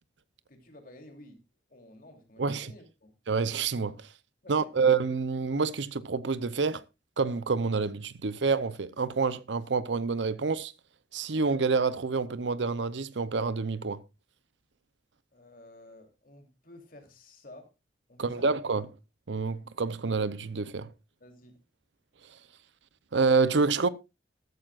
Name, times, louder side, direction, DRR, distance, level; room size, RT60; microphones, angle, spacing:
voice 1, 0.5-1.4 1.7-3.1 4.4-4.9 15.3-17.7 18.1-18.5 21.2-21.6, left 1 dB, 50° left, 3.2 m, -52 dB
voice 2, 2.4-2.7 3.3-4.1 4.5-6.8 7.2-10.7 11.1-14.0 18.2-18.8 19.3-20.9 23.1-23.9, right 4 dB, 80° right, 0.7 m, -27 dB
14.0 x 13.5 x 2.5 m
head